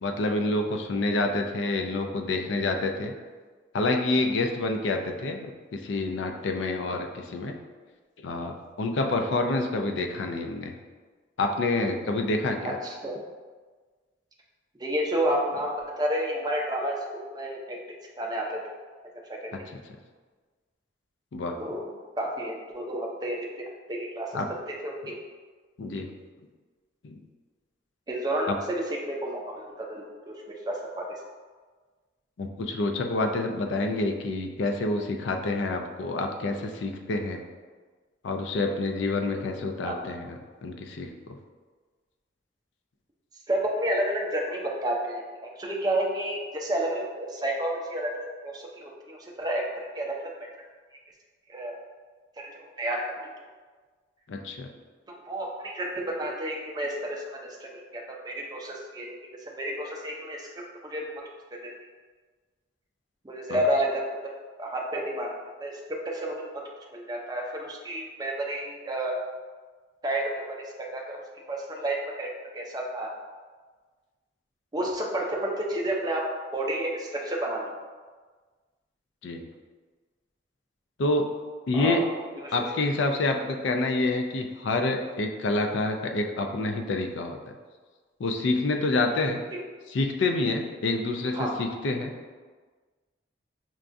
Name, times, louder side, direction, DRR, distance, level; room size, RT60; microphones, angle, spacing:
voice 1, 0.0-3.1 3.7-7.5 8.2-10.7 11.4-12.8 21.3-21.6 24.3-24.5 25.8-26.1 27.0-27.2 28.5-28.6 32.4-37.4 38.2-41.1 54.3-54.7 63.5-63.6 79.2-79.4 81.0-81.3 81.7-82.0 82.5-87.4 88.2-89.4 89.9-92.1, left 2 dB, 70° left, 4 dB, 0.4 m, -27 dB
voice 2, 12.6-13.2 14.8-17.0 17.3-18.6 19.3-19.5 21.6-21.9 22.2-24.6 24.8-25.1 28.1-31.1 39.8-40.0 43.5-49.7 49.9-50.3 51.5-51.8 52.4-52.5 52.8-53.0 55.3-59.2 59.5-61.1 61.5-61.7 63.2-64.2 64.6-65.3 65.6-66.4 66.9-69.2 70.0-71.0 71.5-73.1 74.7-77.8 81.7-82.1 82.4-82.6 83.4-83.5 89.5-89.6 91.3-91.6, right 1 dB, 20° right, -1 dB, 0.5 m, -31 dB
6.0 x 2.3 x 2.5 m, 1.4 s
head